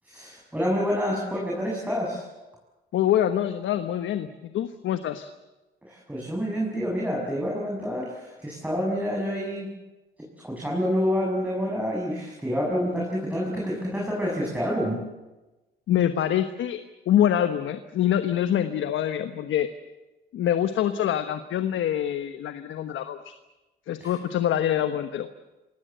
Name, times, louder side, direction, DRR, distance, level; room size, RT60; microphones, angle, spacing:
voice 1, 0.0-2.3 5.8-9.7 10.4-15.0 24.0-24.1, equal, 5° right, -3 dB, 7.4 m, -28 dB
voice 2, 2.9-4.3 4.5-5.3 15.9-16.8 17.1-19.7 20.3-23.3 23.9-25.3, left 10 dB, 75° left, 10 dB, 1.3 m, -25 dB
26.5 x 18.5 x 8.1 m, 1.1 s
cardioid pair, 90°, 20 cm